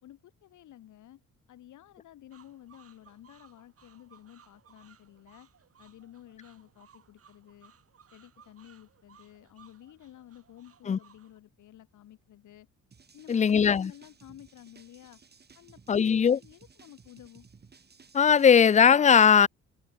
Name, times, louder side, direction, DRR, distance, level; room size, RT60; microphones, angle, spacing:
voice 1, 0.0-1.2 1.5-5.5 5.8-7.7 8.1-12.7 13.1-15.2 15.5-17.5, left 13 dB, 75° left, 3.4 m, -52 dB
sound 1, 2.3-11.4, right 7 dB, 50° right, 4.9 m, -61 dB
sound 2, 12.9-18.8, right 5 dB, 35° right, 3.5 m, -57 dB
voice 2, 13.3-13.9 15.9-16.4 18.1-19.5, left 7 dB, 25° left, 0.4 m, -19 dB
cardioid pair, 90°, 30 cm